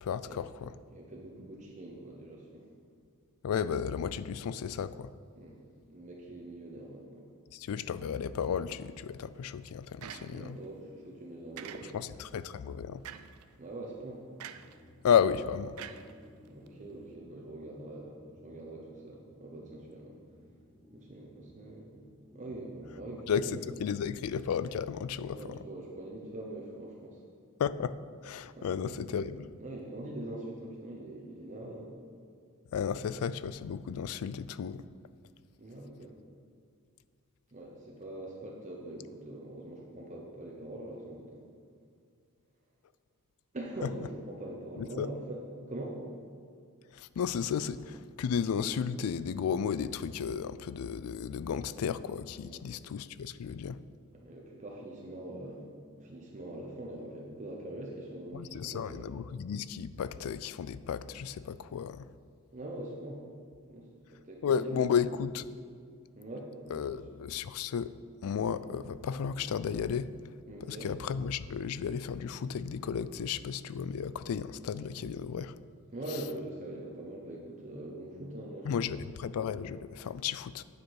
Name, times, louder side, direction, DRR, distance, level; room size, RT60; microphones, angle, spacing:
voice 1, 0.0-0.7 3.4-5.1 7.5-10.6 11.9-13.0 15.0-15.8 23.3-25.4 27.6-28.0 28.2-29.5 32.7-34.8 44.8-45.1 46.9-53.8 58.3-62.1 64.4-65.4 66.7-67.9 68.2-70.1 70.6-75.5 78.6-80.6, left 7 dB, 75° left, 15 dB, 0.3 m, -33 dB
voice 2, 0.9-2.6 5.3-5.6 5.9-7.2 10.3-12.0 13.6-14.2 16.5-20.2 20.9-21.9 22.3-23.7 25.2-27.2 28.5-28.9 29.6-31.9 35.6-36.1 37.5-41.4 43.5-45.4 45.7-46.0 52.4-52.6 54.1-55.7 56.0-59.0 62.5-63.2 63.7-64.9 66.1-67.0 70.5-70.9 75.9-78.9, right 1 dB, 35° right, -2 dB, 0.9 m, -43 dB
sound 1, 10.0-10.7 11.6-12.2 13.0-13.5 14.4-14.8 15.8-16.7, right 9 dB, 75° right, 0.4 m, -46 dB
sound 2, 14.5-26.4, equal, 5° left, 0.6 m, -57 dB
9.0 x 6.6 x 4.7 m, 2.2 s
head